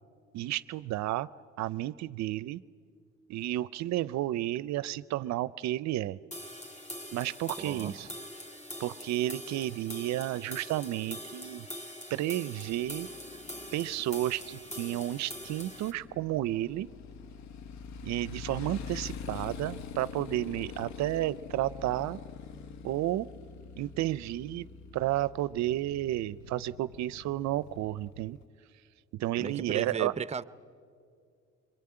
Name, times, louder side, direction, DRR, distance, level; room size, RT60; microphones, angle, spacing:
voice 1, 0.3-1.3 1.6-2.6 3.3-6.2 7.1-8.1 8.8-11.7 12.1-13.1 13.7-16.9 18.0-22.2 22.8-23.3 23.8-24.7 24.9-28.4 29.1-30.1, right 14 dB, 70° right, 0.5 m, -32 dB
sound 1, 6.3-15.9, left 1 dB, 25° left, 2.9 m, -43 dB
voice 2, 7.6-8.1 29.4-30.4, right 6 dB, 20° right, 0.6 m, -35 dB
Motorcycle, 12.7-28.4, left 6 dB, 70° left, 1.0 m, -45 dB
23.5 x 22.5 x 8.7 m
supercardioid pair, 80°, 29 cm